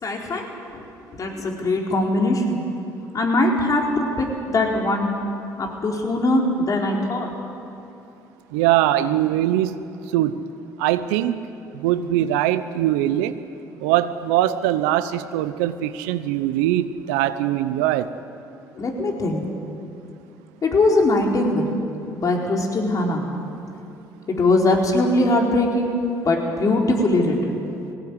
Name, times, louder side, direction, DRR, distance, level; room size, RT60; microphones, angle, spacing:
voice 1, 0.0-0.5 0.7-0.8 1.1-2.6 3.1-5.1 5.6-7.3 18.7-19.4 20.6-21.7 22.1-23.2 24.3-25.9 26.2-27.6, left 2 dB, 45° left, 0 dB, 4.4 m, -21 dB
voice 2, 8.5-9.8 10.1-10.4 10.8-11.4 11.7-13.3 13.8-18.1, right 13 dB, 85° right, 12 dB, 0.8 m, -21 dB
19.0 x 17.5 x 9.7 m, 2.7 s
supercardioid pair, 60°, 8 cm